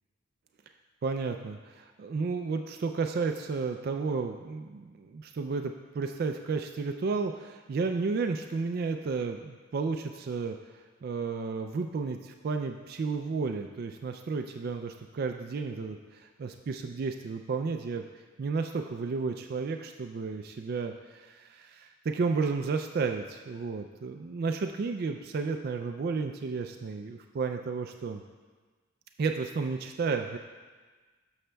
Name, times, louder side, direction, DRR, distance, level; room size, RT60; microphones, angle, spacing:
voice 1, 1.0-28.2 29.2-30.4, right 4 dB, 50° right, 5 dB, 0.3 m, -32 dB
12.5 x 6.4 x 2.2 m, 1.4 s
head